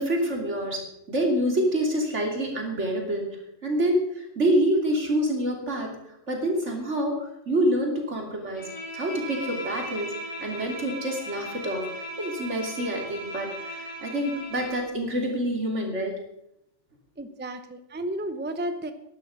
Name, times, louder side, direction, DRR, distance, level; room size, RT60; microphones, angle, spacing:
voice 1, 0.0-3.3 3.6-5.9 6.3-8.7 8.9-10.1 10.4-16.1, right 1 dB, 70° right, 1 dB, 3.2 m, -27 dB
Bowed string instrument, 8.5-14.9, equal, 75° left, 6.4 m, -37 dB
voice 2, 17.2-18.9, right 1 dB, 10° right, 9 dB, 0.7 m, -32 dB
12.0 x 11.0 x 6.2 m, 0.80 s
omnidirectional pair, 1.3 m